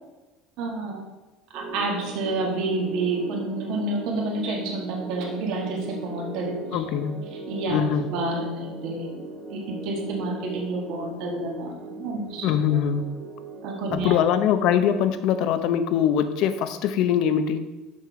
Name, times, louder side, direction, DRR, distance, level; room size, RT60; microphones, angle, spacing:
voice 1, 0.6-1.0 1.5-6.8 7.5-7.8 8.1-9.2 9.5-12.5 13.6-14.2, right 2 dB, 65° right, 0 dB, 1.6 m, -29 dB
sound 1, 1.5-15.9, right 2 dB, 40° right, 2.3 m, -39 dB
voice 2, 6.7-7.2 7.7-8.1 12.4-13.0 13.9-17.6, left 9 dB, 60° left, 10 dB, 0.7 m, -22 dB
6.3 x 5.9 x 4.8 m, 1.1 s
cardioid pair, 140°, 0 cm